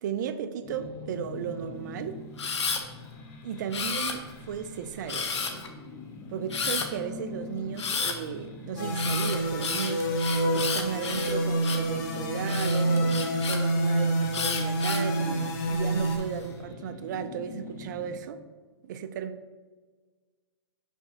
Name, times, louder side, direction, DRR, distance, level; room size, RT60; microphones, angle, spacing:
voice 1, 0.0-2.2 3.4-5.6 6.3-10.1 10.5-13.1 13.4-18.4 18.8-19.3, right 8 dB, 40° right, 9 dB, 0.4 m, -35 dB
sound 1, 0.6-18.2, left 3 dB, 15° left, 0.5 m, -44 dB
Camera, 2.4-2.8 3.7-4.5 5.1-5.7 6.5-6.9 7.8-8.2 8.9-11.9 12.5-13.6 14.3-15.1 15.7-16.2, left 5 dB, 90° left, 0.9 m, -31 dB
sound 2, 8.8-16.2, right 1 dB, 40° left, 0.9 m, -27 dB
5.9 x 5.7 x 2.8 m, 1.4 s
hypercardioid pair, 155°, 14 cm